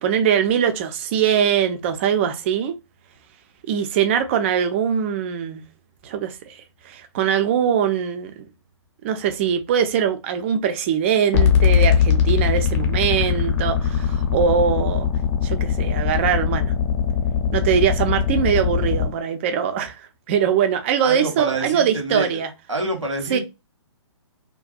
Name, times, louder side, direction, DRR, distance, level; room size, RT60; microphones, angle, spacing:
voice 1, 0.0-2.7 3.7-5.6 6.0-6.6 6.8-8.5 9.0-15.1 15.4-16.7 17.5-22.5 23.3-23.4, right 8 dB, 25° right, 0.3 m, -22 dB
sound 1, 11.3-19.1, left 7 dB, 35° left, 0.6 m, -20 dB
voice 2, 21.0-22.4 22.7-23.4, right 2 dB, 80° right, 1.0 m, -27 dB
2.4 x 2.2 x 2.4 m
figure-of-eight pair, 130°, 16 cm